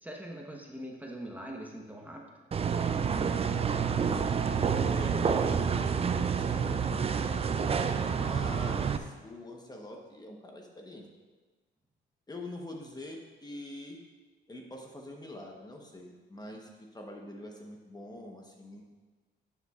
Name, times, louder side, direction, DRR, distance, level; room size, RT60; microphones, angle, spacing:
voice 1, 0.0-2.2, right 1 dB, 10° right, 0 dB, 1.1 m, -42 dB
sound 1, 2.5-9.0, right 6 dB, 30° right, 0.4 m, -28 dB
voice 2, 3.7-4.4 4.8-5.9 6.1-7.0 7.3-7.5 8.1-11.1 12.3-14.0 14.5-18.8, left 1 dB, 20° left, 1 dB, 1.0 m, -45 dB
10.5 x 7.1 x 2.4 m, 1.3 s
cardioid pair, 90°, 20 cm